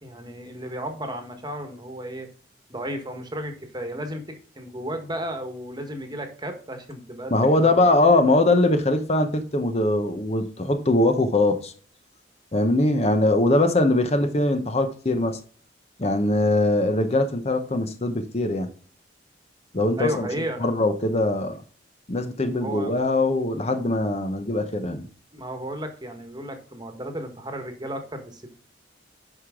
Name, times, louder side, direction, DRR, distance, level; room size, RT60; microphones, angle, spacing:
voice 1, 0.0-2.3 2.7-7.8 20.0-20.7 22.6-22.9 25.3-28.5, equal, 20° right, 6 dB, 1.4 m, -33 dB
voice 2, 7.3-11.7 12.5-15.4 16.0-18.7 19.7-20.3 20.6-21.6 22.1-25.1, left 2 dB, 35° left, 7 dB, 0.9 m, -21 dB
11.0 x 4.9 x 3.7 m, 0.43 s
head